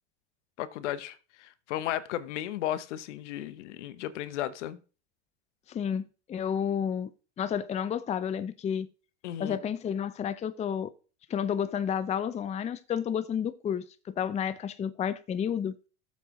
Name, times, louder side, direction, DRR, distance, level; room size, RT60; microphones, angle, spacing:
voice 1, 0.6-4.8 9.2-9.6, left 12 dB, 75° left, 1.0 m, -34 dB
voice 2, 5.7-7.1 7.4-8.9 9.4-10.9 11.3-15.7, left 8 dB, 20° left, 0.5 m, -31 dB
15.5 x 7.3 x 3.1 m
hypercardioid pair, 110°, 36 cm